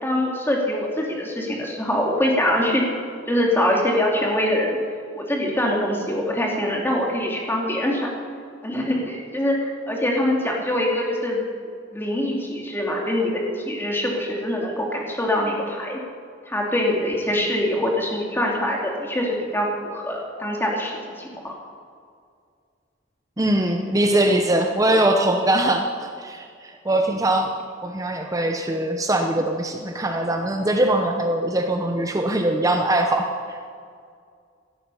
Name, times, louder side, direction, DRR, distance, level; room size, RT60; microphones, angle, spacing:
voice 1, 0.0-2.8 3.3-4.8 5.2-8.1 8.6-11.4 11.9-16.0 16.5-21.5, left 1 dB, 15° left, -1 dB, 2.6 m, -24 dB
voice 2, 23.4-27.5 27.8-33.6, right 1 dB, 20° right, 4 dB, 0.8 m, -22 dB
17.0 x 12.5 x 5.6 m, 2.2 s
head